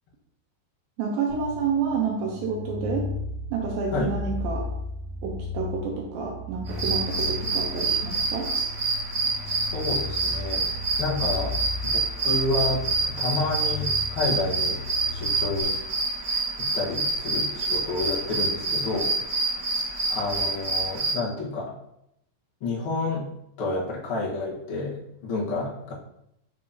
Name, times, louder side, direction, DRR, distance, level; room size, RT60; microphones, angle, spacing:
voice 1, 1.0-3.1 3.5-4.7 5.2-8.5, right 5 dB, 80° right, -1 dB, 2.3 m, -29 dB
sound 1, 1.3-15.6, left 3 dB, 45° left, 1.0 m, -35 dB
sound 2, 6.7-21.1, right 3 dB, 45° right, 1.4 m, -27 dB
voice 2, 9.4-10.7 11.0-11.6 11.8-14.8 15.1-15.7 16.6-19.1 20.1-21.7 22.6-23.3 23.6-25.9, left 2 dB, 85° left, -5 dB, 1.1 m, -30 dB
6.5 x 5.3 x 2.8 m, 0.79 s
omnidirectional pair, 4.7 m